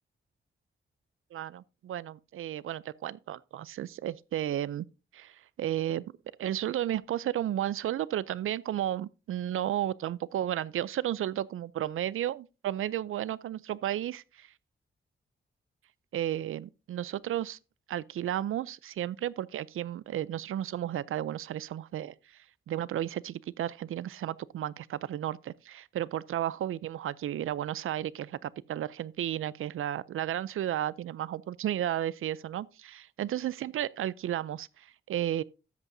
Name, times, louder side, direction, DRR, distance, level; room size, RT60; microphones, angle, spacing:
voice 1, 1.3-4.9 5.1-6.0 6.4-14.5 16.1-17.6 17.9-35.4, right 12 dB, 85° right, 0.4 m, -33 dB
13.0 x 8.2 x 2.6 m
wide cardioid pair, 105°, 21 cm